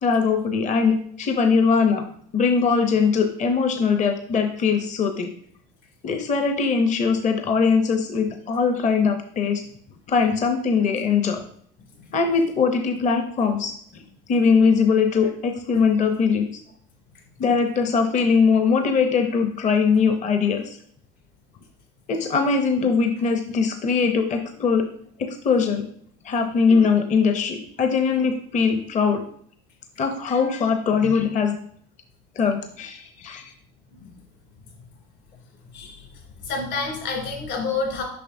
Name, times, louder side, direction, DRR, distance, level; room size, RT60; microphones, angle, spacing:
voice 1, 0.0-2.0 2.3-5.3 6.0-9.6 10.1-11.4 12.1-14.0 14.3-16.5 17.4-20.8 22.1-24.9 25.2-25.8 26.2-29.2 30.0-31.6 32.4-33.5, left 5 dB, 35° left, 6 dB, 0.7 m, -21 dB
voice 2, 36.4-38.0, left 4 dB, 60° left, 1 dB, 2.4 m, -28 dB
6.8 x 5.4 x 2.6 m, 0.63 s
supercardioid pair, 105°, 21 cm